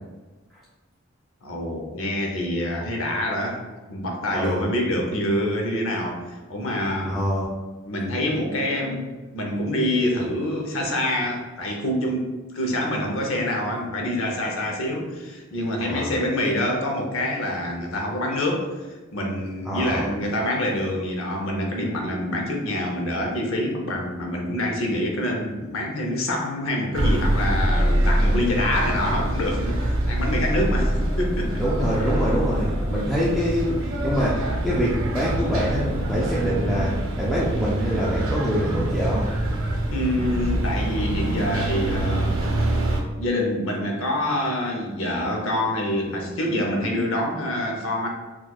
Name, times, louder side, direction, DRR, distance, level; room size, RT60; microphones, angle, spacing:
voice 1, 1.4-3.6 3.9-7.2 7.9-31.7 39.9-42.4 43.2-48.1, left 1 dB, 75° left, 1 dB, 0.7 m, -26 dB
voice 2, 4.3-4.7 7.0-7.6 15.8-16.2 19.6-20.1 31.6-33.8 34.0-39.3, equal, ahead, -8 dB, 0.4 m, -25 dB
sound 1, 26.9-43.0, right 1 dB, 80° right, 0.7 m, -24 dB
4.3 x 2.3 x 2.3 m, 1.2 s
head